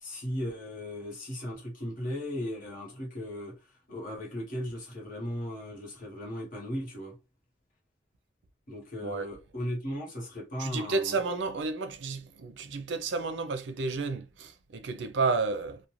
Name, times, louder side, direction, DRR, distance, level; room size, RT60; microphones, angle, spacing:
voice 1, 0.0-3.5 3.9-7.2 8.7-11.2, equal, 45° left, 1.1 m, -37 dB
voice 2, 10.6-15.8, right 4 dB, 70° right, 0.4 m, -31 dB
2.5 x 2.1 x 3.0 m
head